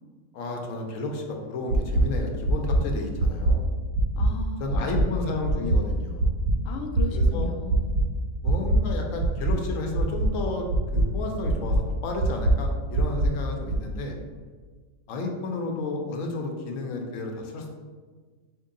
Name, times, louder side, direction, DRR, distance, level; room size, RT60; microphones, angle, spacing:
voice 1, 0.3-3.6 4.6-6.3 7.1-7.5 8.4-10.7 10.9-14.2 15.1-17.7, left 2 dB, 65° left, 2 dB, 0.9 m, -32 dB
sound 1, 1.7-2.0 2.4-2.8 3.2-3.5 3.9-4.3 4.7-5.0 5.4-5.8 6.2-6.5 6.9-7.3 7.7-8.0 8.4-8.8 9.2-9.5 9.9-10.3 10.7-11.0 11.4-11.8 12.2-12.5 12.9-13.3 13.7-13.8, right 1 dB, 85° right, 1.2 m, -22 dB
voice 2, 4.2-5.5 6.6-7.9, left 4 dB, 85° left, 3 dB, 0.6 m, -36 dB
4.5 x 2.7 x 3.7 m, 1.5 s
omnidirectional pair, 1.7 m